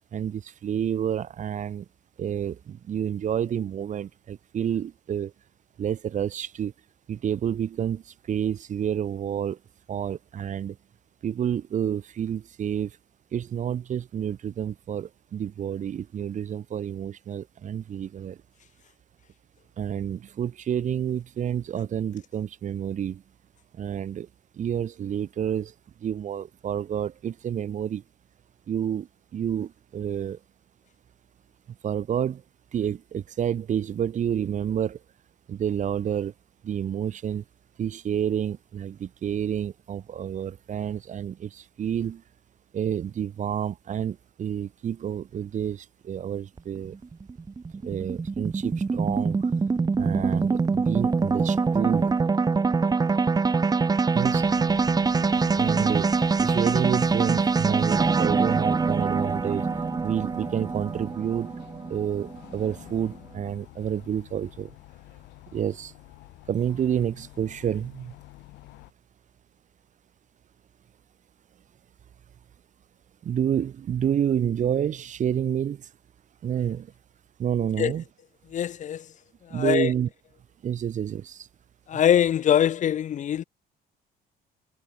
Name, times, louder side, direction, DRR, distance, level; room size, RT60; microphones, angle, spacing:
voice 1, 0.1-1.8 2.2-5.3 5.8-6.7 7.1-9.6 9.9-10.8 11.2-12.9 13.3-18.4 19.8-23.2 23.8-24.3 24.5-25.7 26.0-28.0 28.7-30.4 31.8-32.4 32.7-35.0 35.5-36.3 36.6-37.4 37.8-42.2 42.7-46.9 47.8-49.5 50.0-52.1 54.1-54.5 55.6-56.1 56.4-59.7 60.0-61.6 61.9-64.7 65.5-65.9 66.5-68.1 73.2-75.9 76.4-76.9 77.4-78.0 79.5-80.1 80.6-81.5 81.9-82.0, right 9 dB, 45° right, 1.6 m, -29 dB
sound 1, 46.6-63.0, right 4 dB, 20° right, 1.5 m, -24 dB
sound 2, 54.2-68.9, left 20 dB, 90° left, 4.0 m, -47 dB
voice 2, 78.5-79.0 79.5-79.9 81.9-83.4, left 10 dB, 45° left, 0.8 m, -23 dB
cardioid pair, 110°, 17 cm